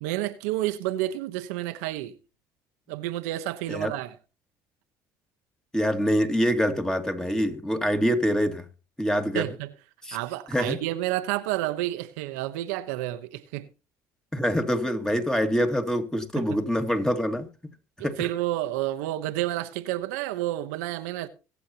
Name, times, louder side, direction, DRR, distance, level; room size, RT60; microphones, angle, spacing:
voice 1, 0.0-2.2 2.9-4.1 9.3-9.7 10.1-13.7 16.4-16.5 18.0-21.3, right 15 dB, 90° right, 1.1 m, -30 dB
voice 2, 5.7-8.7 9.0-9.5 10.0-10.2 10.5-10.8 14.3-17.5 18.0-18.3, equal, 5° left, 2.4 m, -25 dB
24.5 x 8.3 x 2.9 m
supercardioid pair, 90°, 8 cm